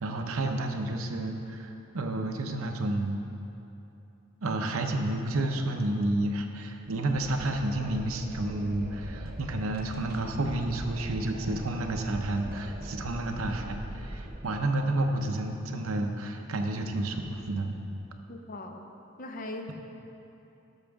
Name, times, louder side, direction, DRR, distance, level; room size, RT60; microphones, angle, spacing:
voice 1, 0.0-3.2 4.4-17.7, right 1 dB, 90° right, 4 dB, 0.7 m, -30 dB
Wind, 7.1-14.4, right 1 dB, 45° right, 0.7 m, -41 dB
voice 2, 18.3-18.9 19.2-19.7, left 2 dB, 40° left, 4 dB, 0.6 m, -39 dB
12.0 x 6.4 x 3.5 m, 2.9 s
head